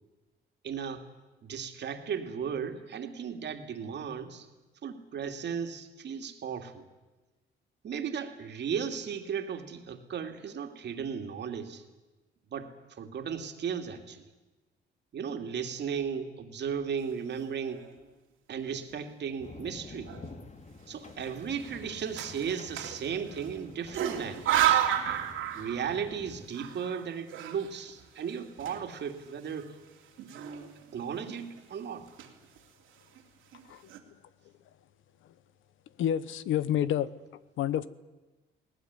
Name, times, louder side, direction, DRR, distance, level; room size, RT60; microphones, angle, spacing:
voice 1, 0.6-1.0 1.4-4.5 4.8-6.8 7.8-11.8 12.5-14.2 15.1-17.8 18.5-20.1 20.9-24.8 25.5-29.8 30.2-32.1, right 7 dB, 60° right, 5 dB, 2.6 m, -36 dB
sound 1, 17.5-18.0 18.6-18.7 18.9-19.6 20.1-20.3 21.2-23.5 23.9-26.1 26.4-29.2 29.5-29.6 30.2-30.9 31.3-31.6 32.0-32.6 33.2-33.3 33.5-34.0, right 11 dB, 90° right, 2.8 m, -32 dB
sound 2, 19.4-26.5, left 3 dB, 35° left, 2.2 m, -49 dB
voice 2, 36.0-37.1 37.6-37.9, left 10 dB, 80° left, 17 dB, 1.0 m, -28 dB
19.5 x 19.0 x 9.7 m, 1.2 s
cardioid pair, 90°, 20 cm